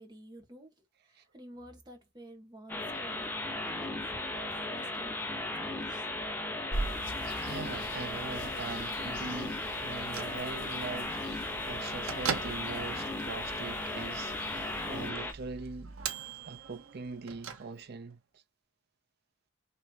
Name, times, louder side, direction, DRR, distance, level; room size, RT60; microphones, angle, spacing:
voice 1, 0.0-6.1, right 1 dB, 20° right, 1.4 m, -51 dB
sound 1, 2.7-15.3, left 2 dB, 10° left, 0.7 m, -36 dB
sound 2, 6.7-15.1, equal, 55° left, 1.7 m, -43 dB
voice 2, 7.4-16.0 16.5-18.4, right 4 dB, 50° right, 0.5 m, -42 dB
Bell / Microwave oven, 9.9-18.1, right 6 dB, 85° right, 0.9 m, -42 dB
4.0 x 3.1 x 2.8 m
head